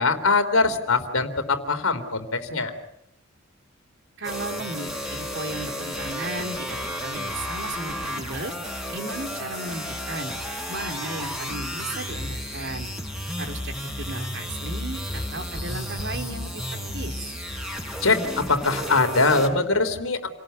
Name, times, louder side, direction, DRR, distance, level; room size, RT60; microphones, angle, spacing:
voice 1, 0.0-2.7 18.0-20.2, left 3 dB, 85° left, 8 dB, 3.4 m, -22 dB
sound 1, 4.2-19.5, equal, ahead, 4.9 m, -32 dB
voice 2, 4.2-8.5 8.9-10.3 10.7-12.9 13.4-16.6 16.9-17.3, right 2 dB, 55° right, 4 dB, 3.8 m, -35 dB
29.5 x 19.0 x 9.3 m, 0.84 s
head